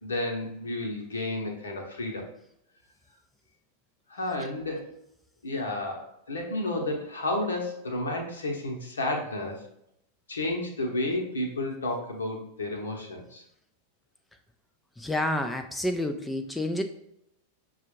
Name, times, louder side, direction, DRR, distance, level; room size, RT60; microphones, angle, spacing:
voice 1, 0.0-2.3 4.1-5.0 5.4-9.7 10.3-13.4, left 1 dB, 70° left, 2 dB, 0.9 m, -31 dB
voice 2, 15.0-16.8, left 1 dB, 5° left, 5 dB, 0.3 m, -29 dB
6.2 x 2.4 x 3.1 m, 0.77 s
figure-of-eight pair, 90°, 0 cm